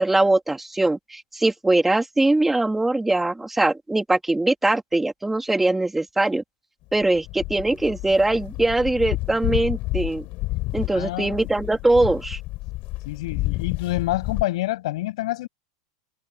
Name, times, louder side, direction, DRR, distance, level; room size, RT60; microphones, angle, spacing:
voice 1, 0.0-6.4 6.9-10.3 10.7-12.4, right 2 dB, 5° right, 2.5 m, -21 dB
sound 1, 6.9-14.4, left 20 dB, 45° left, 3.3 m, -30 dB
voice 2, 10.9-11.5 13.0-15.5, left 17 dB, 70° left, 7.7 m, -27 dB
supercardioid pair, 135°, 3 cm